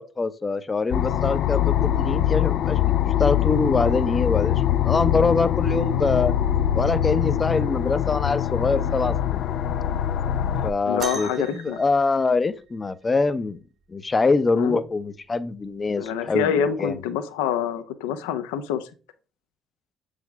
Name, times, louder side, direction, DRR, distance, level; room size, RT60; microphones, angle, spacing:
voice 1, 0.0-2.8 3.2-6.3 6.7-9.4 10.6-13.6 13.9-16.5 16.8-16.9, left 3 dB, 30° left, 0.8 m, -24 dB
sound 1, 0.9-10.7, left 11 dB, 60° left, 0.5 m, -23 dB
voice 2, 10.8-11.8 14.6-14.8 16.0-18.9, left 8 dB, 75° left, 0.8 m, -26 dB
sound 2, 11.0-12.9 14.6-14.7 15.4-15.7 16.6-16.7, right 5 dB, 50° right, 1.4 m, -37 dB
7.9 x 5.1 x 3.6 m
hypercardioid pair, 50°, 0 cm